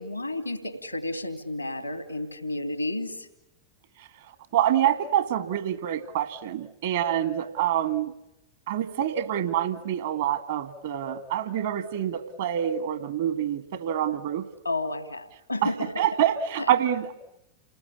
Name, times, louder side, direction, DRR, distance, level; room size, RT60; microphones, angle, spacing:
voice 1, 0.0-3.3 14.6-16.1, left 2 dB, 90° left, 9 dB, 2.7 m, -31 dB
voice 2, 4.5-8.1 8.7-14.5 15.6-15.7 16.0-17.1, right 10 dB, 55° right, 11 dB, 2.0 m, -26 dB
29.0 x 19.5 x 9.6 m, 0.86 s
figure-of-eight pair, 90°, 0 cm